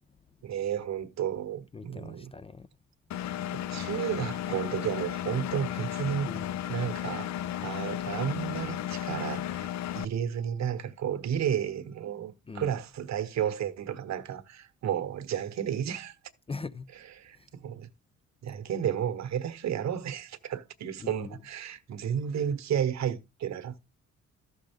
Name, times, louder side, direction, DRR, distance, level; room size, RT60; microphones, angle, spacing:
voice 1, 0.4-2.3 3.5-6.3 6.7-7.3 7.6-9.7 9.9-16.1 17.2-17.9 18.4-23.8, right 9 dB, 65° right, 1.1 m, -32 dB
voice 2, 1.7-2.7 6.3-6.6 12.5-12.7 16.5-16.9 17.4-17.5 21.0-21.4, left 4 dB, 20° left, 0.4 m, -41 dB
Engine, 3.1-10.1, left 11 dB, 65° left, 0.6 m, -34 dB
13.0 x 6.4 x 3.5 m
cardioid pair, 90°, 30 cm